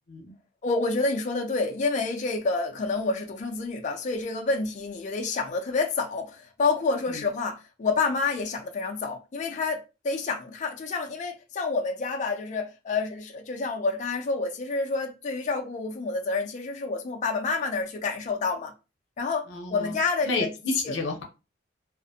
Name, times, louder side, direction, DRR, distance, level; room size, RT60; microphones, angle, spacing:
voice 1, 0.6-18.7 19.2-20.5 20.8-20.9, left 3 dB, 40° left, 0.4 m, -28 dB
voice 2, 19.5-21.2, left 3 dB, 75° left, 0.7 m, -31 dB
2.4 x 2.0 x 2.6 m
head